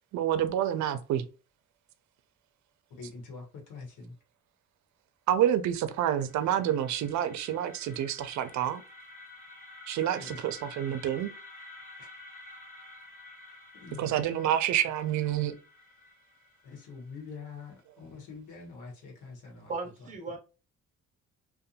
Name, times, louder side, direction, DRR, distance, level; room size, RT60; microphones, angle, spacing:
voice 1, 0.1-1.2 5.3-8.8 9.9-11.3 14.0-15.5, right 11 dB, 70° right, 0.5 m, -28 dB
voice 2, 3.0-4.1 10.2-10.4 12.0-12.1 13.5-14.5 16.6-19.7 20.3-20.4, left 4 dB, 85° left, 1.1 m, -45 dB
sound 1, 5.6-17.5, left 2 dB, 30° left, 1.0 m, -51 dB
voice 3, 19.7-20.4, right 3 dB, 25° right, 0.7 m, -36 dB
2.6 x 2.2 x 2.7 m
cardioid pair, 90°, 30 cm